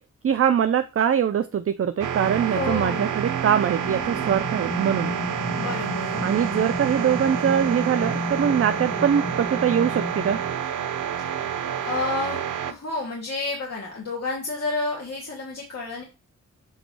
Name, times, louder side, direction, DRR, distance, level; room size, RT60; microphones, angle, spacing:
voice 1, 0.2-5.1 6.2-10.4, right 8 dB, 50° right, 9 dB, 0.5 m, -23 dB
sound 1, 2.0-12.7, right 8 dB, 80° right, 0.7 m, -29 dB
voice 2, 2.5-3.2 5.6-6.2 11.8-12.4 12.7-16.0, left 3 dB, 55° left, -2 dB, 1.7 m, -30 dB
sound 2, 3.8-10.6, left 2 dB, 15° left, 1.5 m, -33 dB
7.3 x 3.0 x 6.0 m, 0.31 s
wide cardioid pair, 125°, 30 cm